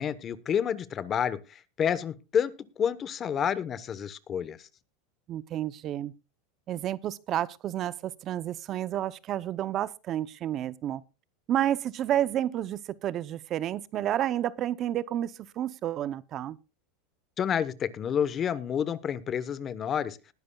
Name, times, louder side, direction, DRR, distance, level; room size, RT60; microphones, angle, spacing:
voice 1, 0.0-4.7 17.4-20.2, left 8 dB, 30° left, 1.0 m, -29 dB
voice 2, 5.3-6.1 6.7-11.0 11.5-16.6, right 11 dB, 35° right, 0.6 m, -30 dB
20.0 x 11.0 x 2.3 m
supercardioid pair, 130°, 0 cm